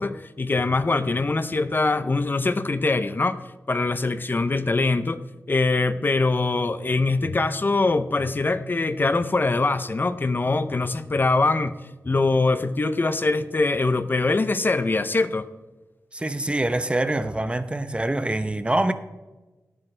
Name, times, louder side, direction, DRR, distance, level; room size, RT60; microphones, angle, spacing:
voice 1, 0.0-3.4 3.7-5.2 5.5-11.7 12.0-15.5, left 3 dB, 35° left, 0.6 m, -23 dB
voice 2, 16.1-18.9, right 1 dB, 20° right, 0.7 m, -25 dB
17.5 x 8.9 x 3.3 m
wide cardioid pair, 80°, 6 cm